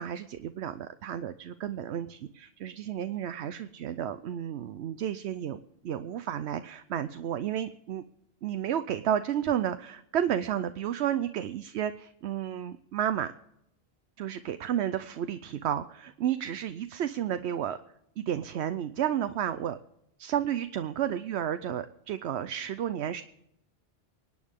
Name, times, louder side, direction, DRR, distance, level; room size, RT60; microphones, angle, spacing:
voice 1, 0.0-8.0 8.4-13.3 14.2-17.8 18.2-19.8 20.2-23.2, right 10 dB, 75° right, 10 dB, 0.9 m, -32 dB
24.0 x 9.5 x 3.6 m, 0.81 s
omnidirectional pair, 1.1 m